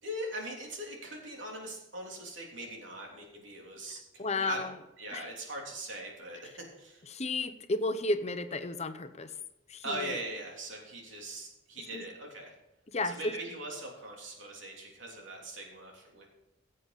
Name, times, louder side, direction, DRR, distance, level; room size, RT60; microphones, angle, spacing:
voice 1, 0.0-4.6 5.0-7.0 9.8-12.5 13.0-16.3, right 1 dB, 85° right, -1 dB, 3.2 m, -41 dB
voice 2, 4.2-4.7 5.1-5.3 7.1-9.3 9.7-10.2 11.9-12.0 12.9-13.3, left 2 dB, 35° left, 10 dB, 0.8 m, -33 dB
16.0 x 7.8 x 4.1 m, 0.93 s
head